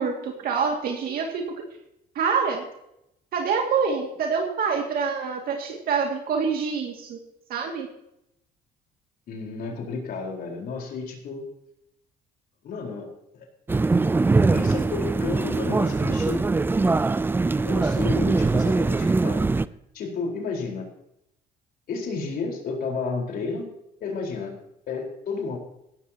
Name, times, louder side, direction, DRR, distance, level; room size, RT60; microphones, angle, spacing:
voice 1, 0.0-1.6 2.2-2.7 3.3-7.2 7.5-7.9, right 5 dB, 60° right, 2 dB, 2.2 m, -26 dB
voice 2, 9.3-11.4 12.6-13.1 13.3-13.5 14.5-16.4 17.6-19.4 19.9-20.9 21.9-23.7 24.0-24.5 24.9-25.6, left 4 dB, 60° left, 1 dB, 4.2 m, -31 dB
sound 1, 13.7-19.7, right 3 dB, 10° right, 0.4 m, -22 dB
17.0 x 13.5 x 2.9 m, 0.81 s
cardioid pair, 110°, 17 cm